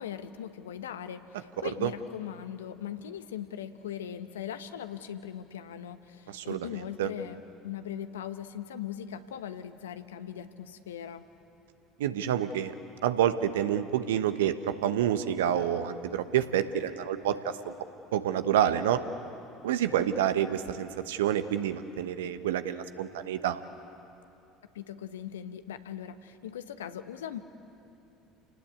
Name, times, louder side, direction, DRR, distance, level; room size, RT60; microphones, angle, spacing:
voice 1, 0.0-11.3 24.7-27.4, left 9 dB, 80° left, 10 dB, 1.1 m, -40 dB
voice 2, 6.3-6.7 7.0-7.1 12.0-12.7 13.0-17.7 18.1-19.0 19.6-23.6, right 10 dB, 75° right, 10 dB, 1.1 m, -28 dB
29.0 x 18.5 x 8.7 m, 2.7 s
figure-of-eight pair, 65°, 0 cm